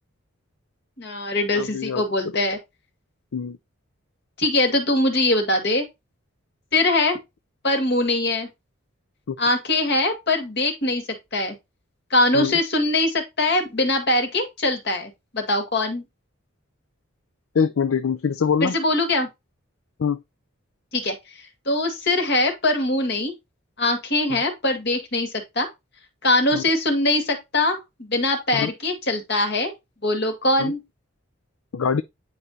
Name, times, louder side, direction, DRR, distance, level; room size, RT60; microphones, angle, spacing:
voice 1, 1.0-2.6 4.4-5.8 6.7-7.2 7.6-8.5 9.4-11.0 11.3-11.6 12.1-16.0 18.6-19.3 20.9-21.1 21.7-23.3 23.8-25.7 26.2-29.7 30.0-30.8, left 2 dB, 50° left, 2.0 m, -22 dB
voice 2, 1.5-2.0 3.3-3.6 9.3-9.4 12.3-12.5 17.5-18.7 20.0-20.2 24.3-24.4 26.5-26.6 28.5-28.7 30.6-30.7 31.7-32.0, left 6 dB, 75° left, 0.5 m, -23 dB
9.9 x 5.4 x 2.8 m
head